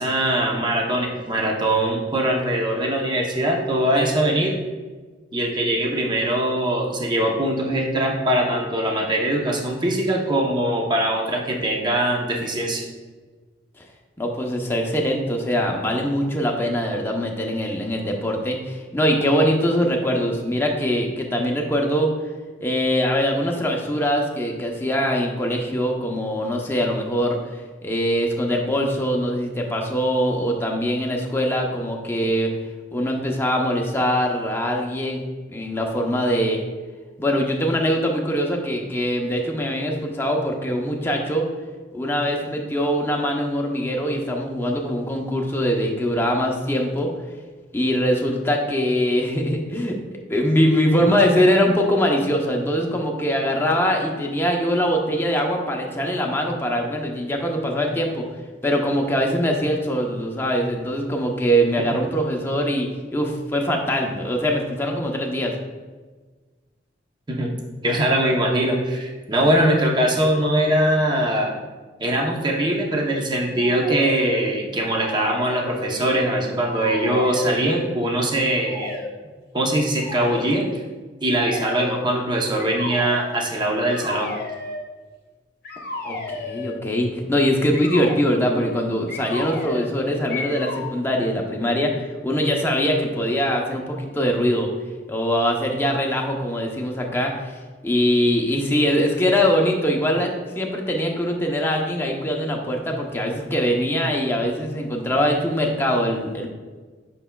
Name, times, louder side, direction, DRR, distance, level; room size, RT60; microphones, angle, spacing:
voice 1, 0.0-4.5 5.3-12.8 61.9-62.0 67.3-67.5 67.8-71.5 72.0-78.9 79.5-80.8 81.2-84.3, right 1 dB, 25° right, -1 dB, 0.8 m, -22 dB
voice 2, 14.2-22.1 22.6-27.4 27.8-32.5 32.9-35.2 35.5-36.6 37.2-41.5 41.9-47.1 47.7-58.3 58.6-65.5 86.0-94.7 95.1-97.5 97.8-106.5, equal, 15° left, 0 dB, 0.7 m, -22 dB
sound 1, 73.6-74.4 74.8-76.3 76.6-77.9 78.6-79.1 80.0-80.6 81.3-82.1 82.6-83.3 83.9-84.8 85.6-86.8 87.7-88.2 89.1-90.0 90.3-91.0, left 2 dB, 55° left, 0.9 m, -33 dB
7.9 x 5.5 x 2.3 m, 1.4 s
head